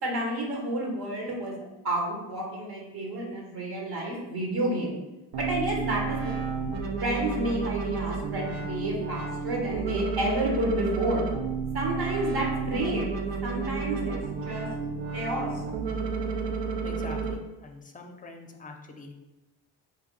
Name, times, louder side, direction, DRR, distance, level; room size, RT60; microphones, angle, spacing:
voice 1, 0.0-4.9 5.4-6.5 7.0-11.2 11.7-13.0 13.4-14.1 14.4-14.7 15.1-15.5, right 1 dB, 55° right, -1 dB, 1.1 m, -30 dB
sound 1, 5.3-17.3, right 5 dB, 75° right, 0.7 m, -31 dB
voice 2, 16.8-19.1, left 2 dB, 20° left, 4 dB, 0.6 m, -44 dB
3.3 x 2.5 x 3.8 m, 1.0 s
supercardioid pair, 55°, 44 cm